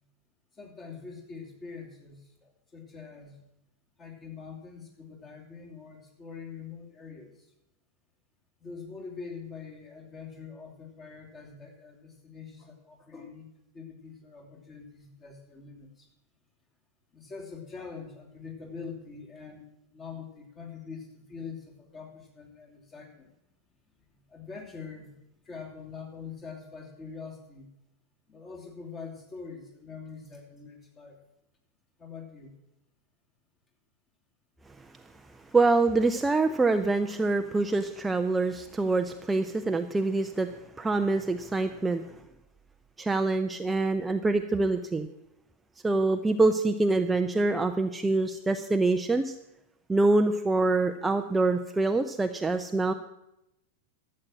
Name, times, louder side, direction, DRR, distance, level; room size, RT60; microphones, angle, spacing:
voice 1, 0.5-3.4 4.0-7.5 8.6-13.5 13.7-16.1 17.1-23.3 24.3-25.1 25.4-27.7 28.3-31.2 32.0-32.6, left 5 dB, 25° left, 1 dB, 2.9 m, -44 dB
voice 2, 35.5-40.5 40.8-42.0 43.0-45.1 45.8-49.3 49.9-52.9, right 3 dB, 10° right, 8 dB, 0.5 m, -25 dB
12.5 x 7.7 x 7.4 m, 0.87 s
figure-of-eight pair, 90°, 0 cm